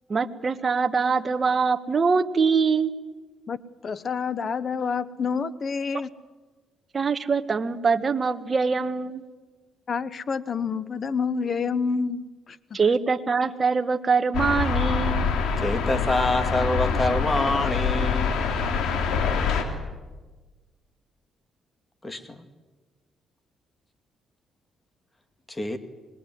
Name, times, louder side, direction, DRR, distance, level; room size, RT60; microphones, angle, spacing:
voice 1, 0.1-2.9 6.9-9.2 12.7-15.3, right 5 dB, 35° right, 8 dB, 1.4 m, -23 dB
voice 2, 3.8-6.1 9.9-12.3 12.7-12.8, left 5 dB, 45° left, 16 dB, 1.1 m, -28 dB
sound 1, 14.3-19.6, left 5 dB, 80° left, 3.4 m, -25 dB
voice 3, 15.6-18.3 22.0-22.4 25.5-25.8, left 2 dB, 20° left, 8 dB, 2.1 m, -26 dB
25.0 x 20.5 x 9.6 m, 1.3 s
cardioid pair, 90°, 0 cm